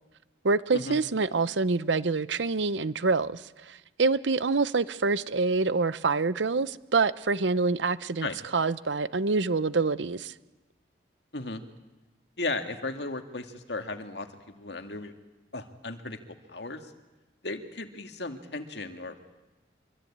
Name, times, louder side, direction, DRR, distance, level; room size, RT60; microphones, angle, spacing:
voice 1, 0.4-10.3, right 4 dB, 85° right, 0.8 m, -26 dB
voice 2, 12.4-15.1 15.5-16.2 16.5-16.9 17.4-19.2, left 2 dB, 70° left, 2.1 m, -35 dB
25.0 x 24.0 x 8.7 m
head